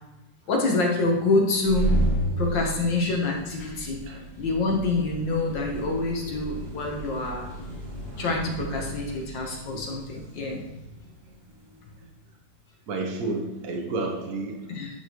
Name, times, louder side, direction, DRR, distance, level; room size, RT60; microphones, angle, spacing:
voice 1, 0.5-1.9 2.4-4.0 4.4-7.5 8.2-10.6 14.7-14.9, left 3 dB, 75° left, 0 dB, 1.8 m, -26 dB
sound 1, 1.5-11.9, right 1 dB, 30° right, 1.8 m, -33 dB
voice 2, 2.5-2.9 4.0-4.2 8.1-8.2 8.6-8.9 9.7-10.0 12.0-12.1 12.9-14.9, right 3 dB, 60° right, 0 dB, 1.2 m, -33 dB
10.0 x 4.6 x 3.0 m, 0.97 s
omnidirectional pair, 2.0 m